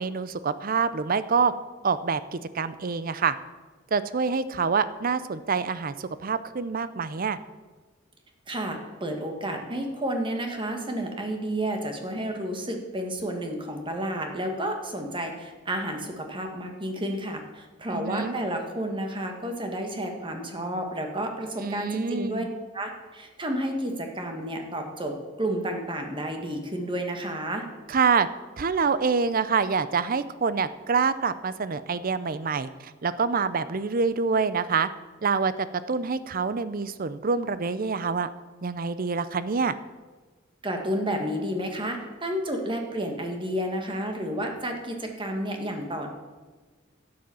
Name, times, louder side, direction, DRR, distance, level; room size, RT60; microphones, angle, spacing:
voice 1, 0.0-1.5 1.8-3.3 3.9-7.4 17.9-18.3 21.6-22.5 27.9-28.3 28.6-34.9 35.2-35.5 35.9-38.3 38.6-39.7, right 5 dB, 45° right, 14 dB, 0.6 m, -26 dB
voice 2, 8.5-22.4 22.7-27.7 40.6-46.1, right 1 dB, 25° right, 4 dB, 1.6 m, -31 dB
11.5 x 7.8 x 7.0 m, 1.3 s
head